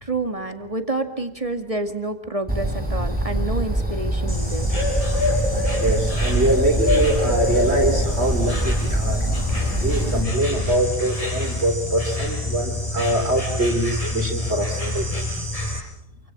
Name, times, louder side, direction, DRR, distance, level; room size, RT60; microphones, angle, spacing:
voice 1, 0.0-4.7, right 2 dB, 20° right, 7 dB, 2.2 m, -28 dB
Bird, 2.5-10.2, equal, 5° right, 6.6 m, -23 dB
Insect, 4.3-15.8, left 1 dB, 20° left, 7.2 m, -28 dB
voice 2, 5.8-9.3 9.8-15.1, right 1 dB, 40° right, 2 dB, 4.0 m, -23 dB
28.5 x 25.5 x 7.6 m, 0.77 s
omnidirectional pair, 1.7 m